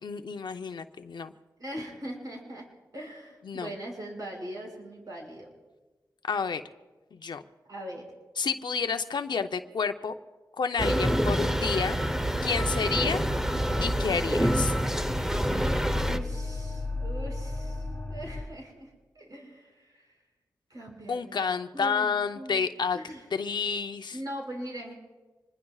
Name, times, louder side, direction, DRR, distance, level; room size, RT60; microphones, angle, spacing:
voice 1, 0.0-1.3 3.5-3.7 6.2-6.6 7.1-7.4 8.4-10.1 10.6-12.0 12.4-13.2 13.8-14.8 21.1-23.0 23.3-24.2, left 5 dB, 75° left, 8 dB, 0.7 m, -30 dB
voice 2, 1.6-2.7 2.9-5.5 7.7-8.1 15.9-20.2 20.7-21.4 21.7-22.7 22.9-23.2 24.1-24.9, right 1 dB, 55° right, -1 dB, 5.9 m, -41 dB
sound 1, 10.8-16.2, equal, 5° right, 0.9 m, -27 dB
sound 2, 12.8-18.4, left 2 dB, 25° left, 2.7 m, -35 dB
26.0 x 21.0 x 2.4 m, 1.2 s
cardioid pair, 65°, 8 cm